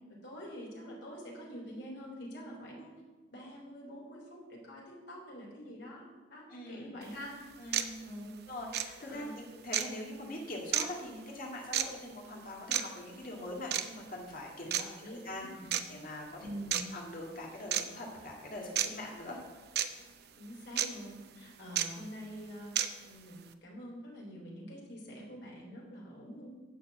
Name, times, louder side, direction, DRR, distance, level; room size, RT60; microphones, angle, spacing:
voice 1, 0.2-2.9 3.3-6.0 6.3-7.5 8.0-8.4 9.1-9.4 14.6-15.8 16.4-16.8 20.4-26.5, equal, 60° left, -2 dB, 3.3 m, -46 dB
voice 2, 6.5-6.9 7.6-8.0 8.5-15.5 15.9-16.4 16.9-19.4, left 1 dB, 45° left, -2 dB, 2.1 m, -43 dB
sound 1, 7.0-7.1 7.7-7.9 8.7-8.9 9.7-9.9 10.7-10.9 11.7-11.9 12.7-12.8 13.7-13.9 14.7-14.8 15.7-15.8 16.7-16.8 17.7-17.8 18.8-18.9 19.8-19.9 20.8-20.9 21.8-21.9 22.8-22.9, right 10 dB, 55° right, 0.6 m, -30 dB
11.5 x 4.5 x 8.0 m, 1.3 s
head